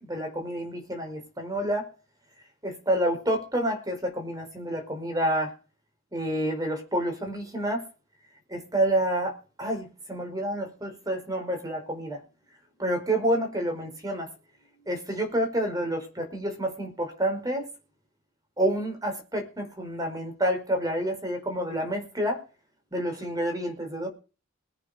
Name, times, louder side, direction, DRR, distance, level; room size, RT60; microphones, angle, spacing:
voice 1, 0.1-1.9 2.6-5.5 6.1-7.8 8.5-12.2 12.8-14.3 14.9-17.6 18.6-22.4 22.9-24.1, right 1 dB, 20° right, 4 dB, 5.0 m, -28 dB
21.0 x 9.1 x 5.1 m, 0.35 s
head